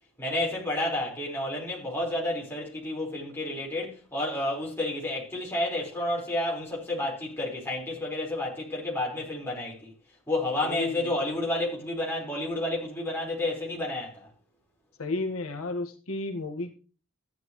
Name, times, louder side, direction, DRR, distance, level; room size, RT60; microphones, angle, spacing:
voice 1, 0.2-9.9 10.3-14.3, left 1 dB, 10° left, 4.5 m, -30 dB
voice 2, 10.6-11.1 15.0-16.8, left 3 dB, 75° left, 1.5 m, -32 dB
14.0 x 10.5 x 3.1 m
head